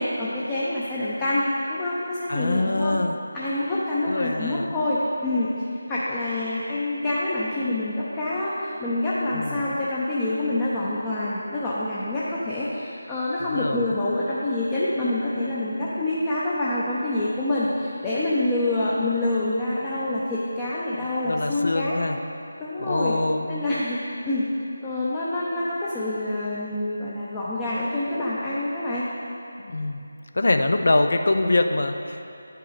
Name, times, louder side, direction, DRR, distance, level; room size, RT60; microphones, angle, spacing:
voice 1, 0.0-3.0 3.3-22.0 22.6-23.1 23.5-24.5 24.8-29.1, left 1 dB, 15° left, -8 dB, 0.6 m, -26 dB
voice 2, 2.3-3.2 4.0-4.7 9.3-9.7 13.4-13.8 21.3-22.2 22.8-23.5 29.6-30.0 30.3-32.2, left 2 dB, 55° left, 6 dB, 0.5 m, -24 dB
10.0 x 5.5 x 3.9 m, 2.8 s
figure-of-eight pair, 160°, 0 cm